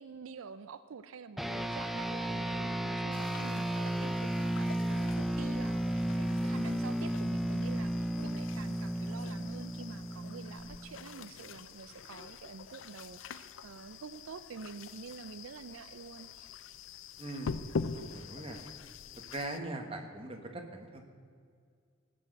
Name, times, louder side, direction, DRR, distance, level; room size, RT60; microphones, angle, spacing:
voice 1, 0.0-16.6, right 5 dB, 85° right, 13 dB, 0.5 m, -48 dB
sound 1, 1.4-11.1, right 1 dB, ahead, 0.4 m, -33 dB
sound 2, 3.1-19.6, left 5 dB, 70° left, 0.5 m, -45 dB
voice 2, 17.2-17.6 17.9-18.6 19.3-21.0, right 2 dB, 30° right, 3 dB, 1.5 m, -41 dB
17.0 x 6.1 x 7.8 m, 2.1 s
head